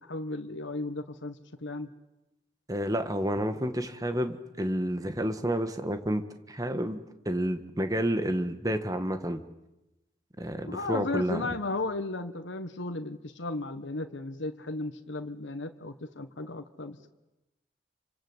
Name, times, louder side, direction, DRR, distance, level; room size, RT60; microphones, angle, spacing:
voice 1, 0.0-1.9 10.6-17.1, left 2 dB, 85° left, 7 dB, 1.4 m, -35 dB
voice 2, 2.7-6.2 6.5-7.0 7.2-9.4 10.4-11.5, equal, 20° right, 8 dB, 1.7 m, -30 dB
28.0 x 25.5 x 8.1 m, 0.95 s
head